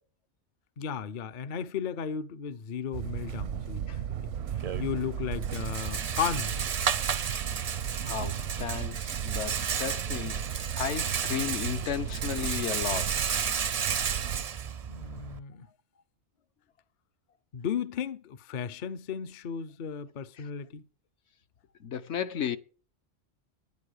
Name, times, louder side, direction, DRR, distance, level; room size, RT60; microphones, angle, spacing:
voice 1, 0.8-3.9 4.2-4.3 4.8-6.7 14.9-15.7 17.5-20.8, left 7 dB, 50° left, 0.6 m, -35 dB
sound 1, 2.9-14.4, right 9 dB, 80° right, 1.0 m, -36 dB
Rattle, 4.3-15.4, right 7 dB, 50° right, 0.5 m, -33 dB
voice 2, 8.0-10.4 10.8-13.2 20.4-20.5 21.8-22.6, left 8 dB, 70° left, 1.0 m, -34 dB
10.0 x 9.6 x 4.9 m
omnidirectional pair, 1.2 m